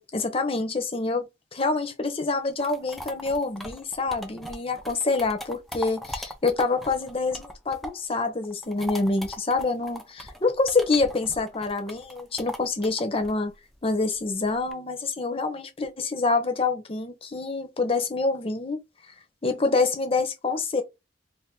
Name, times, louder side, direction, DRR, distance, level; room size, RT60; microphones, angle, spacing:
voice 1, 0.0-13.5 13.8-18.8 19.4-20.8, left 3 dB, 30° left, 0.7 m, -26 dB
sound 1, 2.3-8.1 8.4-14.7, left 1 dB, ahead, 0.4 m, -40 dB
2.6 x 2.5 x 3.5 m
head